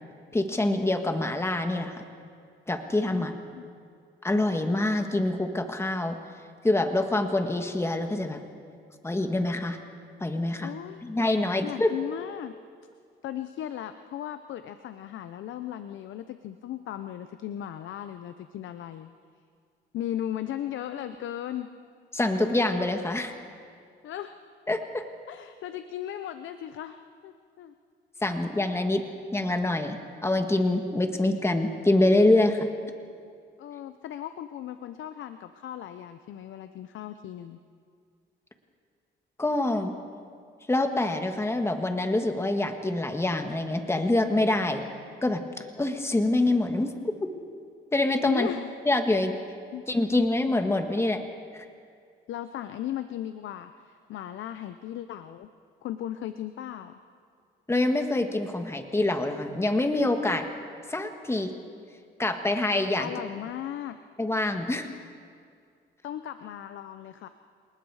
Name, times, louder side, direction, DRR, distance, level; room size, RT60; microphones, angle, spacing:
voice 1, 0.3-2.0 2.7-3.3 4.2-6.2 6.6-8.4 9.0-9.8 10.2-10.7 11.0-11.9 22.1-23.3 24.7-25.0 28.2-29.0 29.3-32.7 39.4-39.9 40.7-44.8 45.2-46.9 47.2-47.3 47.9-48.5 48.8-49.3 49.9-51.2 51.5-51.6 57.7-60.5 60.9-61.5 62.2-63.1 64.2-64.9, left 2 dB, 15° left, 6 dB, 1.7 m, -25 dB
voice 2, 3.1-3.7 10.6-11.0 11.6-12.6 13.2-19.1 19.9-21.7 24.0-24.3 25.3-27.7 33.6-37.6 48.3-48.6 49.7-49.8 52.3-55.5 55.8-56.9 63.0-64.0 66.0-67.3, left 11 dB, 75° left, 10 dB, 0.8 m, -37 dB
27.5 x 19.5 x 4.9 m, 2.2 s
cardioid pair, 90°, 20 cm